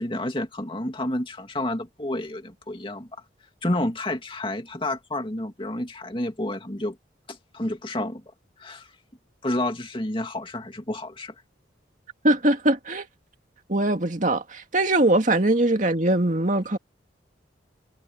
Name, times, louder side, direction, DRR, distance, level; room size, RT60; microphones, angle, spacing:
voice 1, 0.0-3.1 3.6-7.0 7.3-8.2 8.6-8.9 9.4-11.3, left 1 dB, 25° left, 2.5 m, -30 dB
voice 2, 12.2-13.1 13.7-16.8, right 1 dB, 40° right, 2.1 m, -21 dB
head